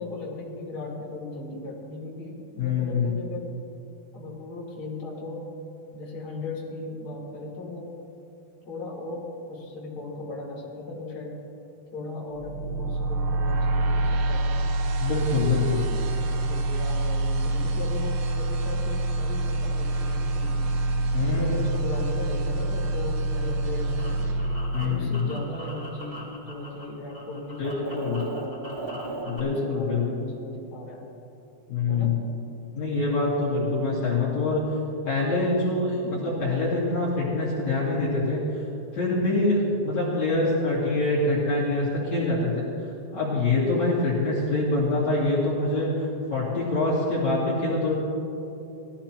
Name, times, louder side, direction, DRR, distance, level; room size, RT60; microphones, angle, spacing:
voice 1, 0.0-3.5 4.1-5.5 5.9-7.9 8.7-11.4 11.9-14.6 15.5-20.6 21.3-24.3 24.8-31.0 31.9-32.2, left 2 dB, 25° left, -6 dB, 2.7 m, -37 dB
voice 2, 2.6-3.1 15.0-15.8 21.1-21.6 24.7-25.4 27.6-28.2 29.2-30.1 31.7-32.2 32.7-34.6 35.0-38.6 38.9-47.9, left 2 dB, 45° left, -8 dB, 3.0 m, -25 dB
sound 1, 12.3-25.4, right 2 dB, 75° right, 2.6 m, -26 dB
sound 2, 23.5-26.8 27.1-29.4, right 1 dB, 5° left, 3.2 m, -38 dB
20.0 x 14.0 x 3.0 m, 2.9 s
omnidirectional pair, 5.0 m